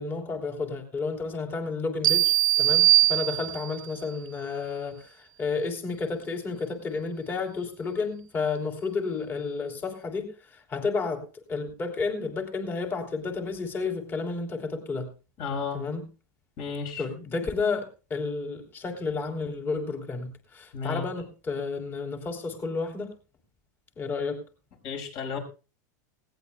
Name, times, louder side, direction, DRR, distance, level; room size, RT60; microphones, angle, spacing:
voice 1, 0.0-15.1 15.7-16.0 17.0-23.1 24.0-24.4, left 4 dB, 20° left, 3 dB, 3.2 m, -31 dB
sound 1, 2.0-3.9, right 14 dB, 85° right, 0.6 m, -21 dB
voice 2, 15.4-15.8 16.6-17.0 20.7-21.0 24.8-25.4, left 5 dB, 45° left, 4 dB, 6.0 m, -33 dB
19.5 x 17.5 x 2.2 m, 0.33 s
supercardioid pair, 140°, 10 cm